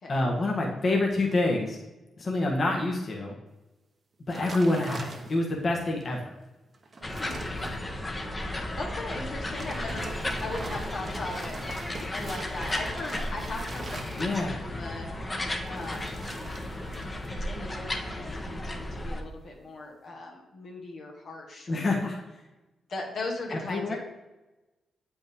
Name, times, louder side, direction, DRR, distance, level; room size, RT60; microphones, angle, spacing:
voice 1, 0.1-1.8 2.2-3.3 4.3-6.3 14.2-14.6 21.7-22.1 23.5-24.0, left 2 dB, 50° left, -1 dB, 1.5 m, -27 dB
sound 1, 4.3-5.6 6.1-6.2 6.7-7.8 9.3-14.6 15.6-17.3 17.6-18.0, right 2 dB, 45° right, 1.2 m, -42 dB
sound 2, 7.0-19.2, left 1 dB, 30° left, 1.2 m, -34 dB
voice 2, 7.2-7.6 8.8-11.6 12.1-15.1 15.7-16.4 17.5-21.7 22.0-22.2 22.9-24.0, left 2 dB, 65° left, -1 dB, 1.6 m, -38 dB
7.8 x 5.2 x 3.6 m, 1.1 s
supercardioid pair, 50°, 0 cm